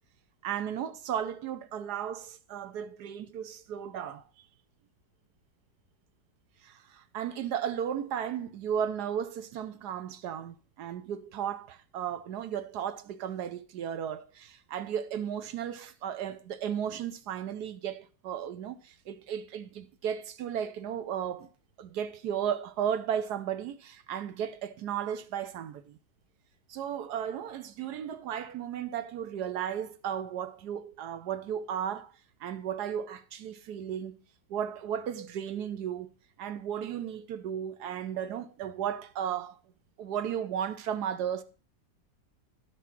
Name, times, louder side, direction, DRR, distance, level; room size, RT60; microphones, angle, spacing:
voice 1, 0.4-4.4 6.6-21.5 21.8-26.0 26.7-32.1 32.4-34.1 34.5-36.1 36.4-39.6 40.0-41.4, right 9 dB, 65° right, 1.3 m, -35 dB
12.0 x 4.8 x 5.9 m
omnidirectional pair, 2.0 m